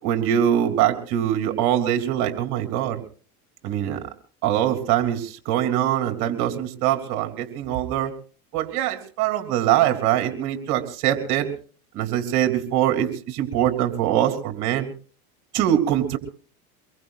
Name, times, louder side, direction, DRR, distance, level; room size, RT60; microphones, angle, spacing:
voice 1, 0.0-3.0 3.6-4.0 4.4-8.1 8.5-11.5 11.9-14.9 15.5-16.2, right 11 dB, 60° right, 6 dB, 3.5 m, -23 dB
24.5 x 22.5 x 2.5 m, 0.39 s
supercardioid pair, 95°, 44 cm